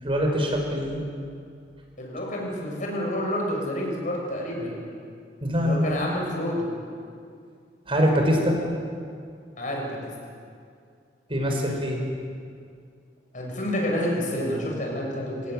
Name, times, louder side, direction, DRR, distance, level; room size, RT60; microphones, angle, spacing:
voice 1, 0.0-1.0 5.4-5.9 7.9-8.6 11.3-12.0, equal, 30° right, 2 dB, 5.3 m, -23 dB
voice 2, 2.0-4.8 5.6-6.7 9.6-10.0 13.3-15.5, left 1 dB, 45° left, -1 dB, 7.4 m, -29 dB
27.5 x 18.0 x 9.3 m, 2.3 s
head